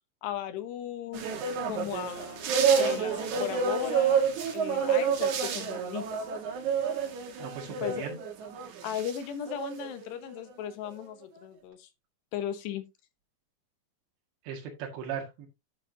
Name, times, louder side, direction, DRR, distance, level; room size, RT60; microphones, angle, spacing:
voice 1, 0.2-1.2 1.7-6.3 7.8-8.1 8.8-11.9 12.3-12.8, left 10 dB, 80° left, 3.3 m, -37 dB
sound 1, 1.1-9.2 9.5-10.5 10.9-11.0, right 6 dB, 55° right, 2.4 m, -29 dB
voice 2, 7.4-8.2 14.4-15.5, right 7 dB, 90° right, 4.2 m, -37 dB
11.5 x 7.0 x 2.7 m
omnidirectional pair, 4.9 m